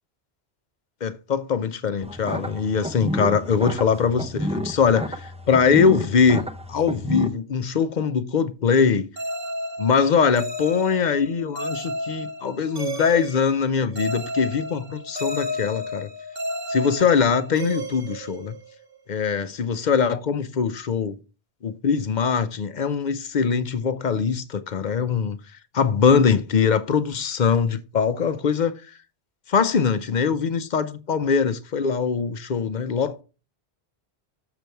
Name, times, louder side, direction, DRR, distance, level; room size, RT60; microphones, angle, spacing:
voice 1, 1.0-6.4 6.7-9.1 9.8-16.1 16.7-18.6 19.1-21.2 21.6-25.4 25.7-28.7 29.5-33.2, left 6 dB, 50° left, 0.7 m, -22 dB
sound 1, 2.0-7.3, equal, 10° right, 0.5 m, -31 dB
sound 2, 9.2-19.0, left 1 dB, 45° right, 1.2 m, -32 dB
6.9 x 6.7 x 4.5 m
omnidirectional pair, 1.1 m